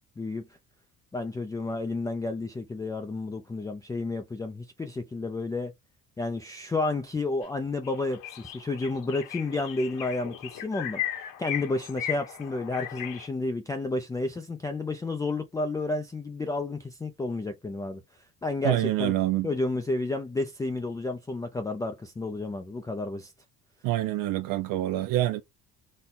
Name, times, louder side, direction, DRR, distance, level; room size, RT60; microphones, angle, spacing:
voice 1, 0.2-0.5 1.1-5.7 6.2-11.0 11.4-18.0 18.4-19.1 19.4-23.3, left 2 dB, 10° left, 0.4 m, -31 dB
sound 1, 7.4-7.5 7.8-13.3, left 11 dB, 70° left, 1.2 m, -37 dB
voice 2, 18.6-19.5 23.8-25.4, right 15 dB, 75° right, 0.5 m, -26 dB
4.2 x 2.2 x 3.7 m
cardioid pair, 145°, 34 cm